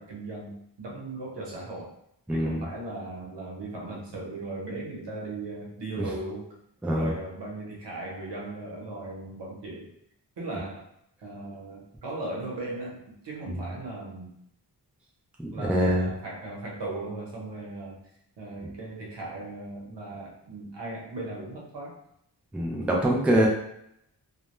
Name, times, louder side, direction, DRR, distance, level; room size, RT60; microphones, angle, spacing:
voice 1, 0.0-1.9 2.3-6.5 6.9-9.9 10.4-10.9 11.2-14.3 15.5-18.0 18.4-22.0 22.9-23.2, right 2 dB, 80° right, -3 dB, 0.9 m, -37 dB
voice 2, 2.3-2.6 6.8-7.1 13.5-13.6 15.4-16.1 22.5-23.5, equal, 5° right, -2 dB, 0.3 m, -24 dB
2.3 x 2.1 x 2.9 m, 0.75 s
wide cardioid pair, 135°, 41 cm